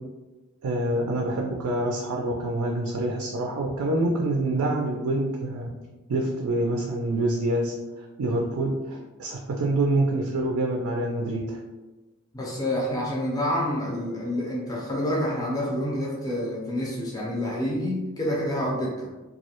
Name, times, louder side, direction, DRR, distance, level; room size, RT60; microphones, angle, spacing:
voice 1, 0.6-5.7 6.1-11.6, right 1 dB, 80° right, -1 dB, 0.4 m, -26 dB
voice 2, 12.3-19.1, left 1 dB, 15° left, -4 dB, 0.4 m, -28 dB
2.3 x 2.0 x 2.8 m, 1.2 s
head